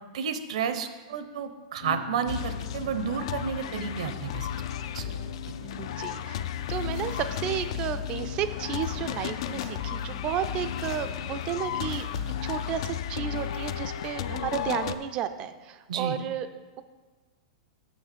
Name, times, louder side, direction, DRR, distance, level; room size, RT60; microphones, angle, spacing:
voice 1, 0.1-4.5 4.9-5.1 15.9-16.2, right 7 dB, 65° right, 9 dB, 0.8 m, -31 dB
sound 1, 1.8-13.8, left 7 dB, 90° left, 1.1 m, -41 dB
sound 2, 2.3-15.0, left 9 dB, 50° left, 0.4 m, -34 dB
voice 2, 5.8-6.4 6.7-12.1 12.4-16.5, right 9 dB, 25° right, 10 dB, 0.4 m, -32 dB
sound 3, 6.6-15.4, left 4 dB, 75° left, 2.0 m, -47 dB
6.5 x 6.3 x 6.8 m, 1.4 s
supercardioid pair, 170°, 4 cm